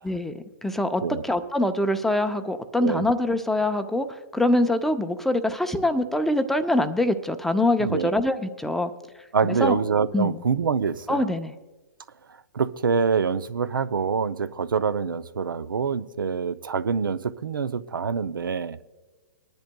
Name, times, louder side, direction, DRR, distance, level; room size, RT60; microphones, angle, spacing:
voice 1, 0.0-8.9 9.4-9.8 10.1-10.4 11.1-11.5, left 1 dB, 5° left, 0.4 m, -24 dB
voice 2, 7.8-8.1 9.3-11.2 12.5-18.8, right 6 dB, 90° right, 0.5 m, -25 dB
25.0 x 10.5 x 2.2 m
hypercardioid pair, 140°, 11 cm